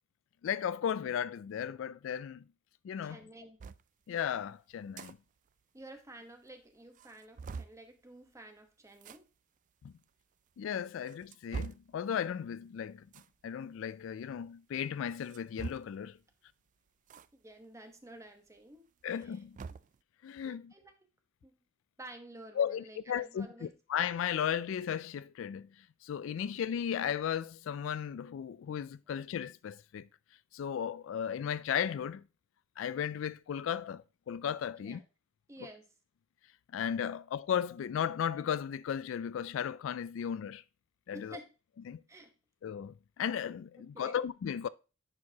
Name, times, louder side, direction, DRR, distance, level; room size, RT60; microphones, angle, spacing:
voice 1, 0.4-2.4 2.8-3.2 4.1-5.2 9.8-9.9 10.6-13.1 13.4-16.2 19.0-19.6 20.2-20.7 22.6-25.7 26.0-30.1 30.5-32.2 32.8-35.0 35.6-35.7 36.7-40.6 41.1-41.4 41.9-42.0 42.6-44.7, left 8 dB, 70° left, 0.3 m, -35 dB
voice 2, 3.0-3.6 5.7-9.2 17.1-19.4 20.5-20.9 21.4-21.6 22.0-23.7 34.8-35.0 35.5-35.9 41.1-41.5 42.1-42.3 43.8-44.2, right 1 dB, 15° right, 1.1 m, -51 dB
sound 1, 3.6-3.8 4.7-5.1 5.5-5.6 5.8-5.9 6.5-6.6 6.9-7.8 8.9-9.2 10.0-10.1 10.8-11.9 13.1-13.3 15.1-16.1 17.1-17.3 17.6-17.7 19.0-20.0, right 5 dB, 40° right, 0.3 m, -43 dB
10.5 x 4.7 x 2.8 m
head